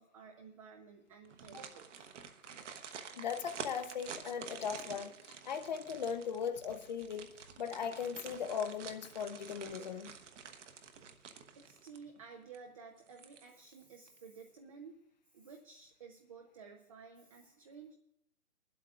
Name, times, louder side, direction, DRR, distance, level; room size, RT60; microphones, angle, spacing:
voice 1, 0.0-2.2 11.6-15.0 15.3-17.9, right 5 dB, 25° right, 4 dB, 0.6 m, -53 dB
sound 1, 1.2-12.2 12.5-12.6 13.1-13.7 14.1-14.2, right 6 dB, 55° right, 1.1 m, -49 dB
voice 2, 3.1-7.3 7.6-10.1, left 7 dB, 30° left, 10 dB, 0.6 m, -38 dB
20.5 x 12.0 x 2.4 m, 0.79 s
hypercardioid pair, 145°, 43 cm